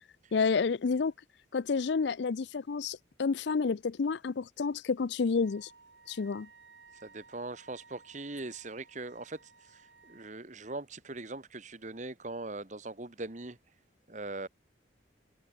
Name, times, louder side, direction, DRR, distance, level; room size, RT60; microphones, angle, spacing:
voice 1, 0.3-1.1 1.5-5.7 6.1-6.5, left 5 dB, 70° left, 0.5 m, -30 dB
Wind instrument woodwind instrument, 5.4-10.3, right 4 dB, 70° right, 4.0 m, -58 dB
voice 2, 7.0-13.6 14.1-14.5, right 2 dB, 40° right, 1.4 m, -41 dB
open air
head